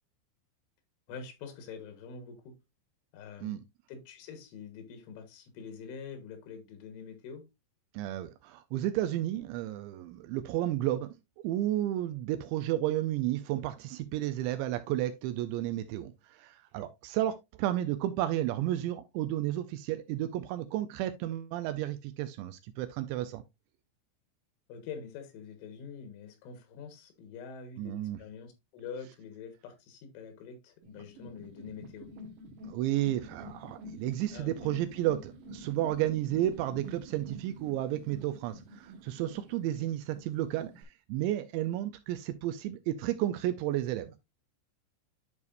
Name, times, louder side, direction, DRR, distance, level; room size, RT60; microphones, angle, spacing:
voice 1, 1.1-2.6 3.1-3.6 3.9-7.5 24.7-32.1 34.3-34.5 39.6-39.9, left 6 dB, 80° left, 3.7 m, -45 dB
voice 2, 7.9-11.1 11.4-23.4 27.8-28.2 32.6-44.1, right 13 dB, 85° right, 2.7 m, -32 dB
sound 1, 30.8-40.8, equal, 65° right, 2.4 m, -48 dB
11.0 x 4.8 x 2.5 m
omnidirectional pair, 5.5 m